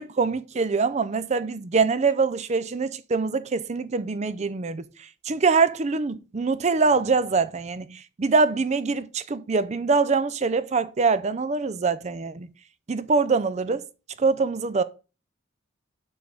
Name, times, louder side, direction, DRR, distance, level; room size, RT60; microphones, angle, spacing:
voice 1, 0.0-4.9 5.3-12.5 12.9-13.8 14.2-14.8, right 4 dB, 35° right, 0.5 m, -24 dB
7.9 x 3.9 x 6.8 m
head